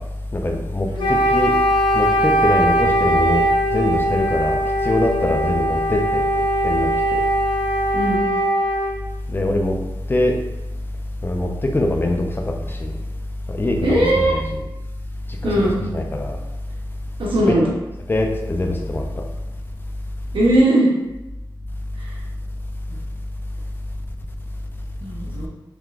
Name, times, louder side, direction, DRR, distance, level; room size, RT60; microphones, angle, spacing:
voice 1, 0.3-1.5 1.9-7.3 9.3-9.8 10.1-10.4 11.2-13.0 13.5-14.6 15.4-16.4 17.5-17.7 18.1-19.2, left 1 dB, 25° left, 2 dB, 0.4 m, -23 dB
Wind instrument woodwind instrument, 1.0-9.0, right 1 dB, 65° left, 0.6 m, -20 dB
voice 2, 13.8-14.3 15.4-15.8 17.2-17.7 20.3-20.9 22.0-22.1 25.0-25.5, right 1 dB, 75° right, -5 dB, 0.9 m, -19 dB
3.6 x 3.0 x 2.4 m, 0.99 s
wide cardioid pair, 115°, 9 cm